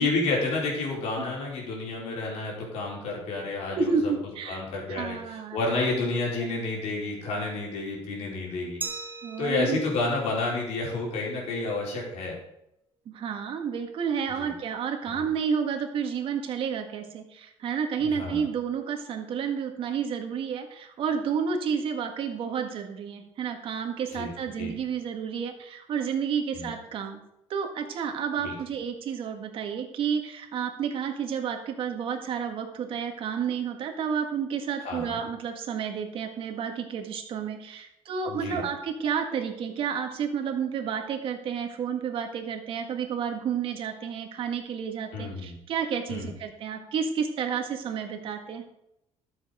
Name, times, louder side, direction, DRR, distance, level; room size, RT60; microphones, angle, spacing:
voice 1, 0.0-4.1 4.5-8.8 9.4-12.4 14.4-14.5 15.1-15.2 18.1-18.5 24.1-24.3 24.6-24.7 26.5-26.7 28.4-28.5 34.8-35.2 38.3-38.6 45.1-45.6 46.1-46.3, left 3 dB, 80° left, -2 dB, 4.3 m, -30 dB
voice 2, 3.7-4.6 4.9-5.6 9.2-9.8 13.1-27.2 27.5-48.6, right 7 dB, 55° right, 4 dB, 1.8 m, -30 dB
Glass, 8.8-11.5, right 4 dB, 20° right, 1.1 m, -41 dB
13.0 x 7.4 x 5.0 m, 0.82 s
cardioid pair, 160°, 11 cm